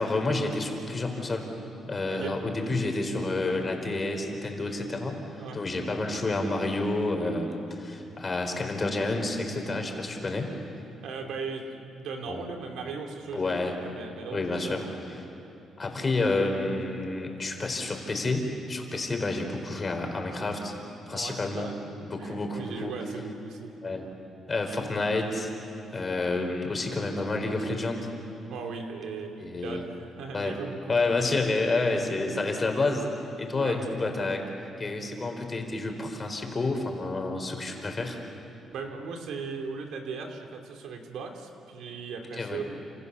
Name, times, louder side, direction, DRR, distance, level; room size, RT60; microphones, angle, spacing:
voice 1, 0.0-1.5 1.8-5.2 5.5-10.5 12.3-12.4 13.3-13.8 14.3-14.8 15.8-20.7 21.1-21.7 22.0-22.9 23.8-24.1 24.5-25.5 25.9-28.1 29.4-29.8 30.3-30.6 30.9-34.4 34.8-38.2 42.3-42.6, left 2 dB, 30° left, 3 dB, 4.7 m, -29 dB
voice 2, 11.0-14.9 21.1-21.8 22.2-23.8 28.5-31.0 32.1-32.2 33.6-33.8 38.7-42.6, right 5 dB, 80° right, 4 dB, 2.8 m, -38 dB
29.5 x 27.5 x 7.1 m, 2.8 s
cardioid pair, 90°, 0 cm